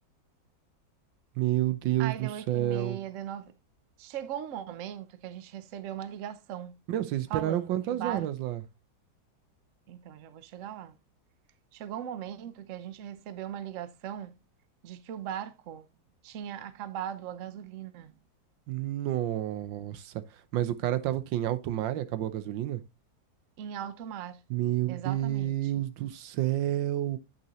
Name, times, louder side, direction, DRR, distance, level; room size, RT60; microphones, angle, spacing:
voice 1, 1.4-3.0 6.9-8.6 18.7-22.8 24.5-27.2, right 13 dB, 85° right, 1.4 m, -30 dB
voice 2, 2.0-3.6 4.0-6.8 7.3-8.3 9.9-11.0 11.7-14.3 14.8-15.9 16.2-18.1 23.6-24.4 24.9-25.7, right 10 dB, 60° right, 0.9 m, -39 dB
8.3 x 6.0 x 3.0 m
omnidirectional pair, 2.0 m